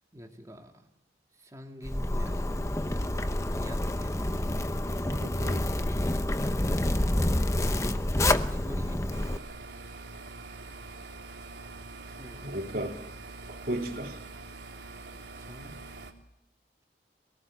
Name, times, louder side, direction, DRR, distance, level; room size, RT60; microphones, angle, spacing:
voice 1, 0.1-1.0 1.4-2.6 3.6-4.3 8.5-9.5 12.0-12.5 15.4-15.7, equal, 20° right, 2 dB, 2.5 m, -47 dB
Zipper (clothing), 1.8-9.4, left 1 dB, 15° left, 0.8 m, -28 dB
voice 2, 5.1-5.7 12.4-13.0 13.5-14.2, right 1 dB, 55° right, 2 dB, 3.3 m, -35 dB
sound 1, 9.1-16.1, right 3 dB, 90° right, 3.3 m, -44 dB
25.5 x 18.5 x 9.0 m, 0.83 s
head